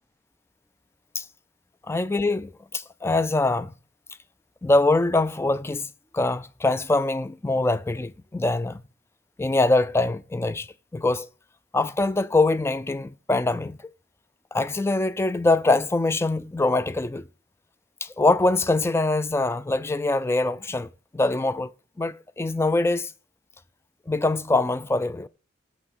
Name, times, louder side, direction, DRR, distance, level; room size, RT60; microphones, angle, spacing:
voice 1, 1.9-3.7 4.6-5.9 6.1-8.8 9.4-10.7 10.9-11.3 11.7-13.8 14.5-17.2 18.0-21.7 22.0-23.1 24.1-25.3, left 2 dB, 15° left, 0.3 m, -23 dB
6.9 x 6.1 x 6.8 m
head